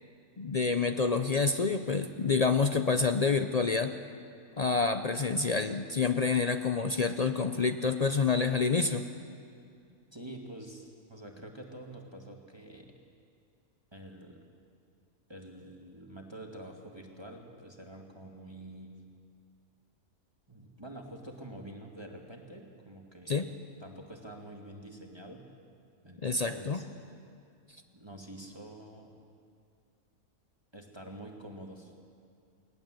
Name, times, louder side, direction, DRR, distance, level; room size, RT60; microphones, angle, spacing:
voice 1, 0.4-3.9 4.6-9.0 23.3-23.5 26.2-26.8, left 4 dB, 60° left, 7 dB, 0.4 m, -28 dB
voice 2, 10.1-12.9 13.9-14.4 15.3-18.9 20.5-23.4 23.8-25.5 26.0-26.9 27.9-29.1 30.7-31.9, right 1 dB, 20° right, 1 dB, 1.8 m, -47 dB
19.5 x 18.0 x 7.6 m, 2.3 s
omnidirectional pair, 1.6 m